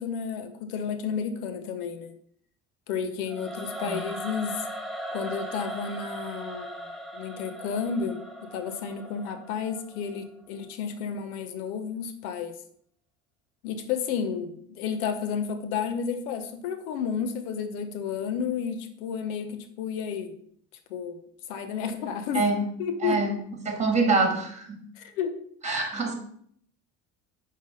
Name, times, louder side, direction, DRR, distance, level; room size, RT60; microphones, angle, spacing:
voice 1, 0.0-2.2 2.9-4.6 5.1-6.9 7.1-12.6 13.6-20.4 20.9-21.2 21.5-22.5 22.8-23.2 25.0-25.4, left 6 dB, 85° left, 9 dB, 0.9 m, -31 dB
Singing / Musical instrument, 3.3-10.4, right 1 dB, ahead, 0.8 m, -38 dB
voice 2, 23.0-23.3 23.7-24.8 25.6-26.1, right 3 dB, 15° right, 3 dB, 1.9 m, -25 dB
5.2 x 3.8 x 5.2 m, 0.65 s
hypercardioid pair, 65°, 42 cm